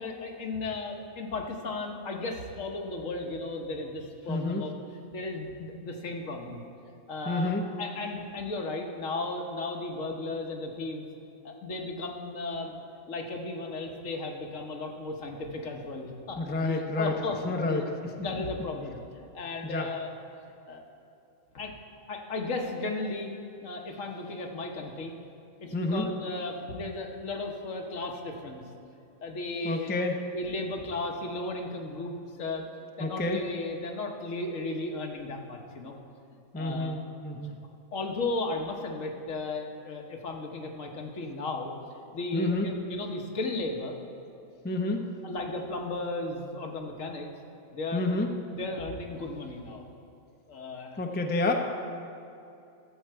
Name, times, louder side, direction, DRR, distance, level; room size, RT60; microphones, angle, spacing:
voice 1, 0.0-4.7 5.1-6.6 7.1-7.5 7.8-11.1 11.4-17.8 18.2-19.0 19.3-20.1 20.7-20.8 21.5-21.7 22.1-23.3 23.6-25.1 25.6-28.6 29.2-29.9 30.3-32.7 33.0-35.9 36.5-37.0 37.4-37.5 37.9-43.9 45.2-47.3 47.7-48.2 48.5-49.8 50.5-51.0, left 2 dB, 75° left, 2 dB, 1.4 m, -35 dB
voice 2, 4.3-4.7 7.3-7.7 16.4-17.2 17.4-18.2 19.6-19.9 25.7-26.1 29.6-30.3 33.0-33.4 36.5-37.5 42.3-42.7 44.6-45.1 47.9-48.3 51.0-51.5, left 2 dB, 15° left, 3 dB, 0.4 m, -29 dB
13.0 x 7.6 x 4.6 m, 2.7 s
omnidirectional pair, 1.3 m